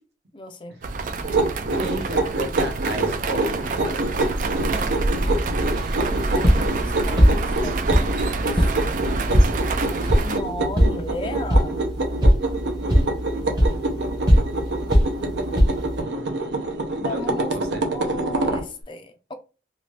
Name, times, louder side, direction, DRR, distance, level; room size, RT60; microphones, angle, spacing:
voice 1, 0.3-0.8 5.9-8.1 8.5-8.7 10.2-11.8 17.0-17.5 17.9-19.3, left 2 dB, 25° left, 0.4 m, -35 dB
sound 1, 0.8-10.4, right 3 dB, 45° right, 0.3 m, -27 dB
sound 2, 1.2-18.7, right 2 dB, 85° right, 0.7 m, -27 dB
voice 2, 1.7-4.3 16.0-16.6 16.9-17.8, right 1 dB, 70° right, 1.0 m, -34 dB
sound 3, 5.2-16.0, equal, 25° right, 0.8 m, -22 dB
2.7 x 2.4 x 3.2 m
head